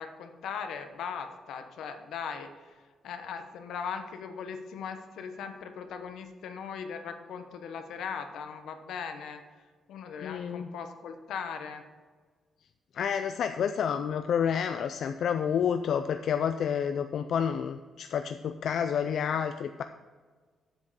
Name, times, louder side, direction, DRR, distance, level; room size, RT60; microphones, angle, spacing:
voice 1, 0.0-2.8 3.0-9.4 9.9-11.8, left 6 dB, 80° left, 7 dB, 0.9 m, -39 dB
voice 2, 10.2-10.7 12.9-19.8, left 8 dB, 55° left, 8 dB, 0.3 m, -29 dB
8.0 x 7.4 x 4.2 m, 1.5 s
cardioid pair, 170°, 0 cm